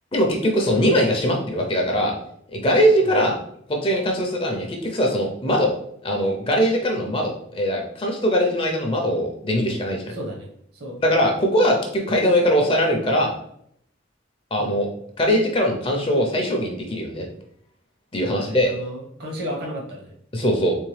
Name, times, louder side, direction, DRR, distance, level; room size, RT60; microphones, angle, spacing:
voice 1, 0.1-2.1 2.5-3.4 3.7-5.7 6.0-10.1 11.0-13.3 14.5-14.9 15.2-17.2 18.1-18.7 20.3-20.7, equal, 25° left, 1 dB, 0.6 m, -21 dB
voice 2, 10.1-10.5 10.7-11.0 14.6-14.8 18.3-20.1, equal, 55° right, -1 dB, 1.2 m, -33 dB
3.6 x 3.6 x 3.3 m, 0.68 s
head